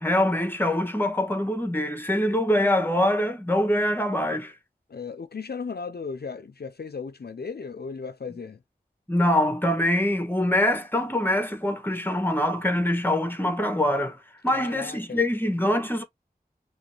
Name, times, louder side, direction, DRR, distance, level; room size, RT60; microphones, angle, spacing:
voice 1, 0.0-4.5 9.1-14.2 14.4-16.0, left 1 dB, 10° left, 1.5 m, -24 dB
voice 2, 4.9-8.6 14.5-15.2, left 5 dB, 75° left, 0.5 m, -36 dB
5.2 x 3.2 x 3.2 m
wide cardioid pair, 40°, 17 cm